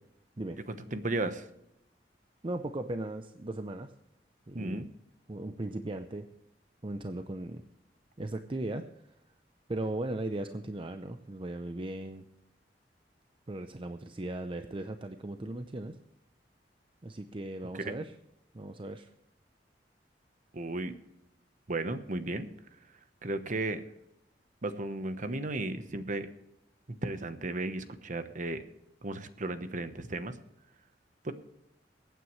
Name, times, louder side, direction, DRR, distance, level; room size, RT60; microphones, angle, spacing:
voice 1, 0.7-1.5 4.5-4.9 17.8-17.9 20.5-21.0 21.7-22.5 23.2-23.8 24.6-26.3 27.0-28.6 29.0-30.4 31.2-31.3, right 2 dB, 45° right, 10 dB, 1.0 m, -34 dB
voice 2, 2.4-3.9 4.5-4.8 5.3-6.3 6.8-7.6 8.2-8.9 9.7-12.2 13.5-16.0 17.0-18.1 18.5-19.1, right 2 dB, 30° right, 8 dB, 0.6 m, -37 dB
23.0 x 9.2 x 3.2 m, 0.81 s
head